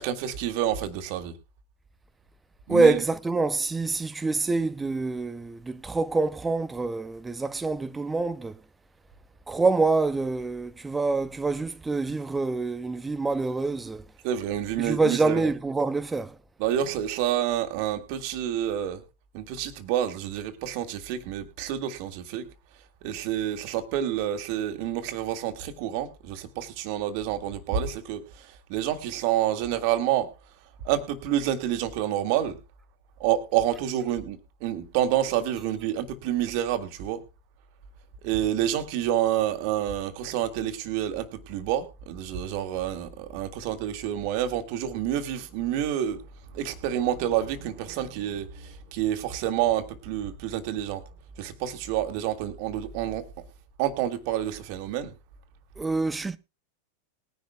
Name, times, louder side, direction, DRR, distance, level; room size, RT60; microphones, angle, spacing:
voice 1, 0.0-1.3 2.7-3.0 14.2-15.4 16.6-19.0 19.3-22.5 23.0-30.3 30.8-32.6 33.2-37.2 38.2-46.2 46.5-51.0 51.4-53.2 53.8-55.1, right 11 dB, 45° right, 1.8 m, -28 dB
voice 2, 2.7-8.6 9.5-14.0 14.8-16.3 55.8-56.4, right 3 dB, 10° right, 0.5 m, -26 dB
20.5 x 10.5 x 2.3 m
figure-of-eight pair, 90°, 0 cm